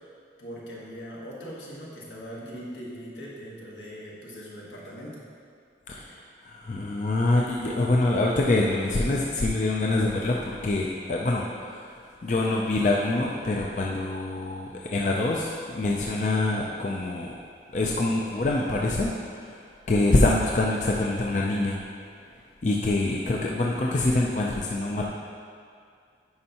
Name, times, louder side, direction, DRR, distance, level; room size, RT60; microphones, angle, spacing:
voice 1, 0.4-5.2, equal, 80° left, -5 dB, 1.5 m, -40 dB
voice 2, 5.9-17.3 17.7-21.8 22.6-25.0, left 2 dB, 40° left, -2 dB, 0.4 m, -25 dB
9.4 x 5.5 x 2.9 m, 2.2 s
head